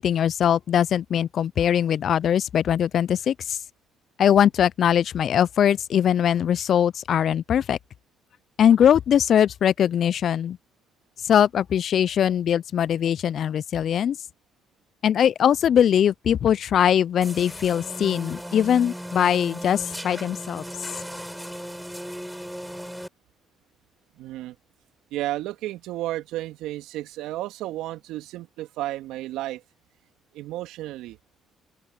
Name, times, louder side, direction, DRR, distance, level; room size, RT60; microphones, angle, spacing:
voice 1, 0.0-3.6 4.2-7.8 8.6-10.6 11.3-14.2 15.0-20.6, left 9 dB, 60° left, 0.6 m, -21 dB
sound 1, 17.2-23.1, equal, ahead, 6.8 m, -36 dB
voice 2, 24.2-24.6 25.1-29.6 30.3-31.2, right 15 dB, 75° right, 2.9 m, -32 dB
open air
hypercardioid pair, 50°, 0 cm